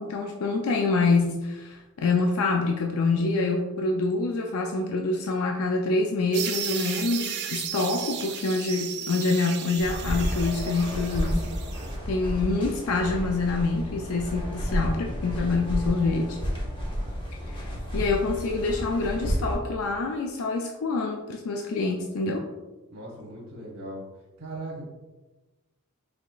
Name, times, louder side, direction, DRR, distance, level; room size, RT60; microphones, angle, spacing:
voice 1, 0.0-11.5 12.1-16.4 17.6-22.5, left 3 dB, 70° left, 1 dB, 0.4 m, -26 dB
sound 1, 6.3-11.9, right 8 dB, 50° right, 0.4 m, -35 dB
sound 2, 9.8-19.6, equal, 20° left, 0.8 m, -31 dB
voice 2, 22.9-24.0 24.4-24.9, right 1 dB, 70° right, -4 dB, 0.9 m, -38 dB
4.8 x 3.5 x 2.3 m, 1.1 s
head